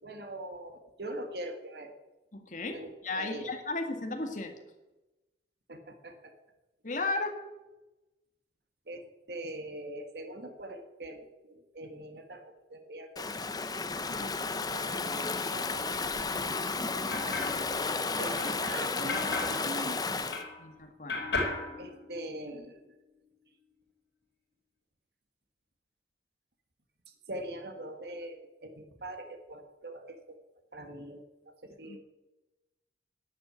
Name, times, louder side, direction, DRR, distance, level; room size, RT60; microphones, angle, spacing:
voice 1, 0.0-1.9 2.7-3.5 5.7-6.3 8.9-13.3 14.1-17.8 18.2-20.4 21.8-22.8 27.3-30.4 30.7-32.0, right 1 dB, 65° right, 5 dB, 1.6 m, -43 dB
voice 2, 2.3-4.5 6.8-7.4 14.1-14.6 20.6-21.2 31.8-32.0, left 2 dB, 45° left, 5 dB, 1.9 m, -35 dB
Stream / Ocean, 13.2-20.4, left 4 dB, 20° left, 0.7 m, -33 dB
sound 1, 16.7-20.8 21.1-22.6, left 3 dB, 75° left, 4.8 m, -37 dB
11.5 x 8.0 x 8.8 m, 1.0 s
head